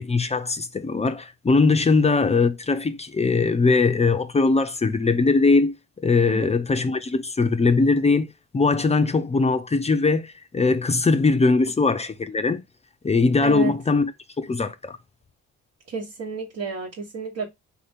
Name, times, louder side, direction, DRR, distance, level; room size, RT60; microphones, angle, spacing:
voice 1, 0.0-8.3 8.5-12.6 13.0-14.1 14.4-15.0, left 3 dB, 20° left, 0.5 m, -21 dB
voice 2, 13.4-13.7 15.9-17.5, right 4 dB, 65° right, 1.2 m, -31 dB
4.2 x 2.8 x 3.4 m
cardioid pair, 90°, 30 cm